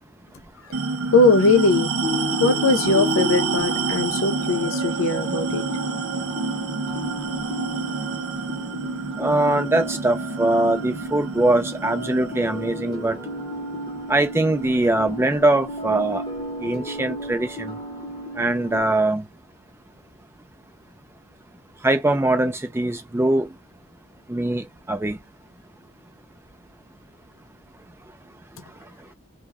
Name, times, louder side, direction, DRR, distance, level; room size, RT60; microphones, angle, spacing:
sound 1, 0.7-15.5, right 4 dB, 70° right, 0.5 m, -29 dB
voice 1, 1.1-1.9 2.4-5.6, left 3 dB, 70° left, 0.5 m, -20 dB
sound 2, 2.0-18.8, equal, 20° left, 0.7 m, -33 dB
voice 2, 9.2-13.2 14.1-16.3 16.6-17.7 18.4-19.2 21.8-23.5 24.3-25.2, right 2 dB, 10° right, 0.3 m, -22 dB
2.1 x 2.1 x 3.4 m
head